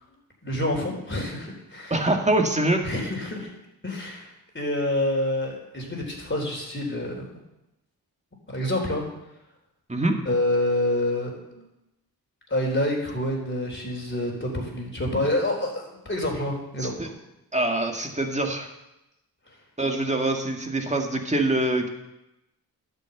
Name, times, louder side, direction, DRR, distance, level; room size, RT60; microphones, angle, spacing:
voice 1, 0.4-2.0 2.8-3.5 3.8-4.3 4.5-7.3 8.5-9.0 10.3-11.7 12.5-17.0, left 1 dB, 30° left, -1 dB, 3.8 m, -27 dB
voice 2, 1.9-2.8 9.9-10.1 16.8-17.1 17.5-18.7 19.8-21.9, right 2 dB, 20° right, 3 dB, 1.8 m, -24 dB
11.5 x 5.5 x 7.8 m, 0.93 s
cardioid pair, 65°, 38 cm